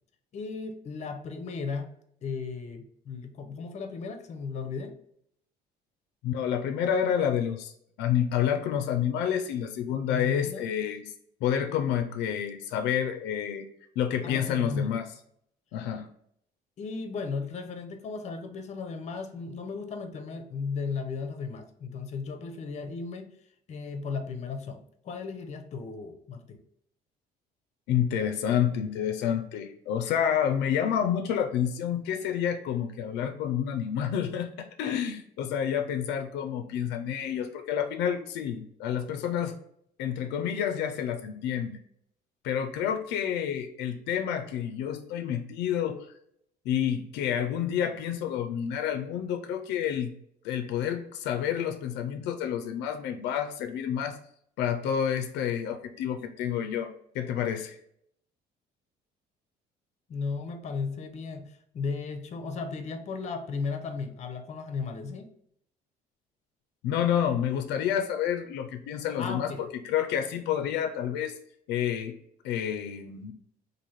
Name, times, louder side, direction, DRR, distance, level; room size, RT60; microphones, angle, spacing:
voice 1, 0.3-1.9 2.2-5.0 10.0-10.7 14.2-15.0 16.8-23.3 23.7-26.6 60.1-65.3 69.2-69.6, left 4 dB, 40° left, 7 dB, 0.6 m, -35 dB
voice 2, 6.2-11.0 11.4-13.7 14.0-15.1 15.7-16.1 27.9-39.6 40.0-41.8 42.4-46.1 46.7-50.1 50.4-54.2 54.6-57.8 66.8-69.5 69.8-71.4 71.7-72.2 72.4-73.3, left 9 dB, 85° left, 6 dB, 0.4 m, -29 dB
3.1 x 2.6 x 4.0 m, 0.69 s
cardioid pair, 110°, 17 cm